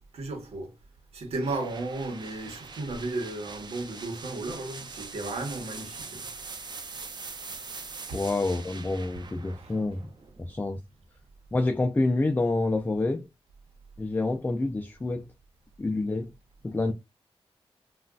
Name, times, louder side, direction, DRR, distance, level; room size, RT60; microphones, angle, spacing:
voice 1, 0.1-0.7 1.1-6.3 8.1-8.2 9.6-9.7, right 2 dB, 85° right, 1.1 m, -34 dB
sound 1, 1.4-11.2, right 4 dB, 45° right, 0.6 m, -43 dB
voice 2, 8.1-10.1 10.4-10.8 11.5-13.3 14.0-15.3 15.8-16.3 16.6-16.9, left 2 dB, 20° left, 0.4 m, -27 dB
3.6 x 2.5 x 2.3 m
cardioid pair, 70°, 10 cm